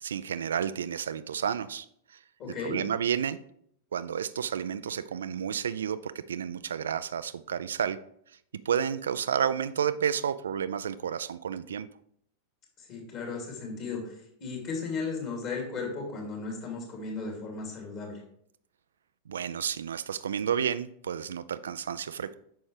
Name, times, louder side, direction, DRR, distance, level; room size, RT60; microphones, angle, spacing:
voice 1, 0.0-2.2 2.6-3.4 3.9-8.0 8.7-11.9 19.3-22.4, right 8 dB, 65° right, 14 dB, 0.3 m, -31 dB
voice 2, 2.4-2.8 12.8-18.2, left 4 dB, 40° left, 0 dB, 3.0 m, -35 dB
9.0 x 6.2 x 3.3 m, 0.69 s
figure-of-eight pair, 90°, 0 cm